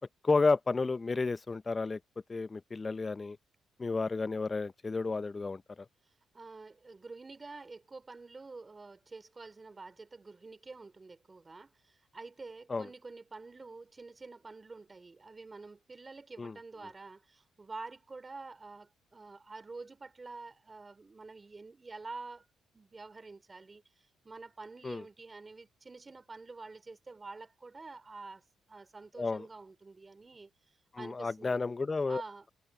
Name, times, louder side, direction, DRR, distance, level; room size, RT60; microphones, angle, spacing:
voice 1, 0.2-2.0 2.3-3.4 3.8-5.6 12.7-12.9 16.4-16.6 24.8-25.0 29.2-29.5 30.9-32.2, left 3 dB, 25° left, 0.8 m, -31 dB
voice 2, 6.3-22.5 22.7-30.5 31.0-31.6 32.1-32.5, right 3 dB, 25° right, 3.1 m, -48 dB
cardioid pair, 90°, 0 cm